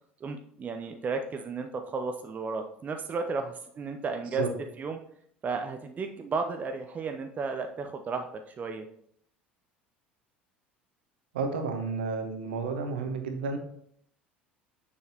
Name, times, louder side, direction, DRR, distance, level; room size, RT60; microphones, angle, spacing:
voice 1, 0.2-4.4 4.8-5.0 5.4-8.9, right 4 dB, 25° right, 5 dB, 0.6 m, -33 dB
voice 2, 11.3-13.6, right 4 dB, 70° right, 5 dB, 1.1 m, -31 dB
7.0 x 6.6 x 2.9 m, 0.67 s
figure-of-eight pair, 65°, 6 cm